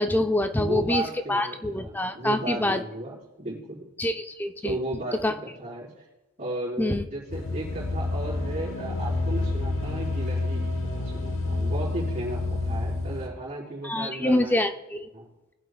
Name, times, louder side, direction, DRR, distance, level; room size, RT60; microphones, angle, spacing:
voice 1, 0.0-2.8 4.0-4.8 5.2-5.3 6.8-7.1 13.8-15.1, left 1 dB, 10° left, 8 dB, 0.4 m, -26 dB
voice 2, 0.5-3.9 4.6-6.0 6.4-10.6 11.0-14.6 15.1-15.3, right 2 dB, 35° right, -6 dB, 4.0 m, -35 dB
sound 1, 7.3-13.3, left 2 dB, 60° left, 1.1 m, -29 dB
19.5 x 7.8 x 2.3 m, 1.0 s
head